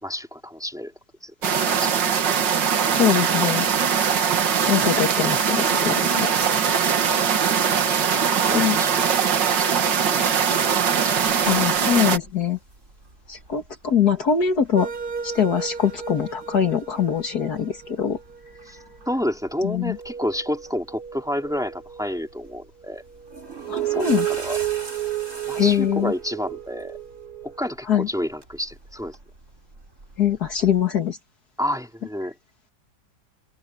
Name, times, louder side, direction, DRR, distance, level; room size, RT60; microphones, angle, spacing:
voice 1, 0.0-0.9 1.2-1.5 1.8-2.0 7.9-8.1 8.3-9.8 10.1-10.2 11.0-11.2 18.6-18.8 19.1-23.0 23.7-24.6 25.5-27.0 27.4-29.2 31.6-32.3, equal, ahead, 3.9 m, -30 dB
sound 1, 1.4-12.2, right 7 dB, 85° right, 2.2 m, -21 dB
voice 2, 3.0-3.7 4.7-6.5 8.5-8.8 11.5-12.6 13.3-14.9 15.2-18.2 19.6-20.0 23.7-24.3 25.6-26.1 27.9-28.1 30.2-31.2, left 8 dB, 60° left, 2.3 m, -22 dB
sound 2, 11.7-30.8, right 2 dB, 40° right, 4.6 m, -45 dB
sound 3, 14.7-19.1 19.5-19.6 19.9-22.5 23.1-27.7, right 11 dB, 60° right, 2.1 m, -33 dB
open air
omnidirectional pair, 1.9 m